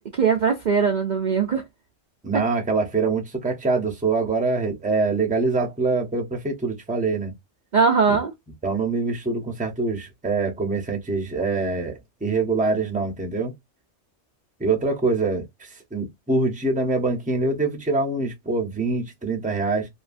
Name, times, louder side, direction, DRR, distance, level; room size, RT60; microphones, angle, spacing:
voice 1, 0.1-1.6 7.7-8.3, right 5 dB, 50° right, 0.6 m, -20 dB
voice 2, 2.2-7.3 8.1-8.2 8.6-13.5 14.6-19.9, right 3 dB, 10° right, 0.7 m, -24 dB
2.8 x 2.7 x 2.5 m
omnidirectional pair, 1.2 m